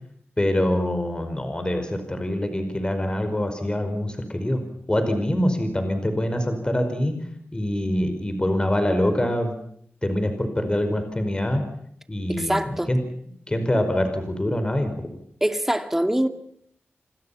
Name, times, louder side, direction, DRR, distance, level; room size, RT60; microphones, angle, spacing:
voice 1, 0.4-4.6 4.9-7.2 7.5-9.5 10.0-11.7 12.1-13.0 13.5-15.1, left 1 dB, 20° left, 7 dB, 5.0 m, -24 dB
voice 2, 12.3-12.9 15.4-16.3, right 1 dB, 5° right, 7 dB, 2.5 m, -23 dB
29.0 x 24.5 x 5.7 m, 0.67 s
wide cardioid pair, 100°, 4 cm